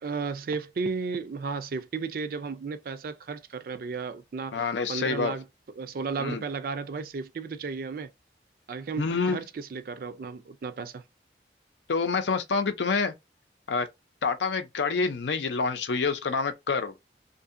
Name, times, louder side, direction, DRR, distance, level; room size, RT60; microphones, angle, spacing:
voice 1, 0.0-5.4 5.8-8.1 8.7-11.0, right 4 dB, 50° right, 0.4 m, -34 dB
voice 2, 4.5-5.3 6.2-6.4 9.0-9.4 11.9-13.1 13.7-13.9 14.2-16.9, left 4 dB, 85° left, 0.6 m, -27 dB
2.7 x 2.6 x 2.5 m
head